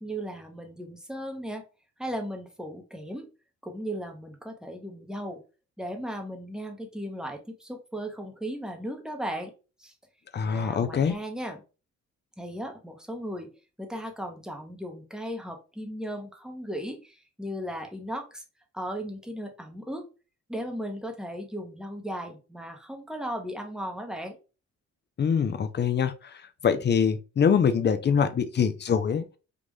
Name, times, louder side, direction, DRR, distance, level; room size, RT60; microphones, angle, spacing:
voice 1, 0.0-1.6 2.0-3.3 3.6-5.4 5.8-9.5 9.8-9.9 10.4-11.6 12.4-13.5 13.8-18.4 18.7-20.0 20.5-24.4, equal, ahead, 0.9 m, -36 dB
voice 2, 10.3-11.1 25.2-29.2, left 7 dB, 35° left, 0.6 m, -24 dB
3.7 x 2.5 x 3.1 m
cardioid pair, 90°, 30 cm